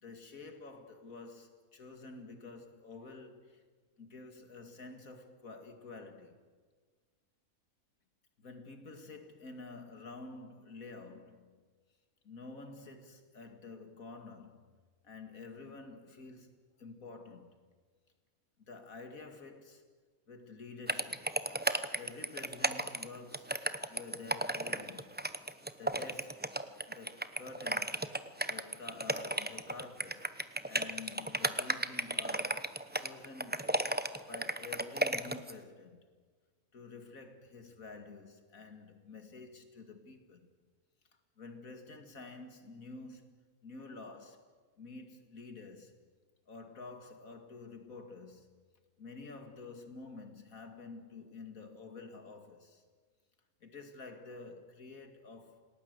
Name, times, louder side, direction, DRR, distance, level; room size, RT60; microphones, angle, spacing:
voice 1, 0.0-3.6 4.0-6.4 8.4-11.6 12.2-14.8 15.0-17.6 18.7-19.8 20.3-21.3 21.9-23.6 23.9-25.2 25.8-26.5 26.9-28.0 28.5-30.4 30.7-33.8 34.3-36.1 36.7-40.5 41.4-46.0 46.5-48.5 49.0-52.8 53.6-55.7, left 3 dB, 65° left, 2.6 m, -49 dB
sound 1, 20.9-35.5, right 1 dB, 10° right, 0.5 m, -34 dB
28.5 x 19.0 x 8.0 m
omnidirectional pair, 1.6 m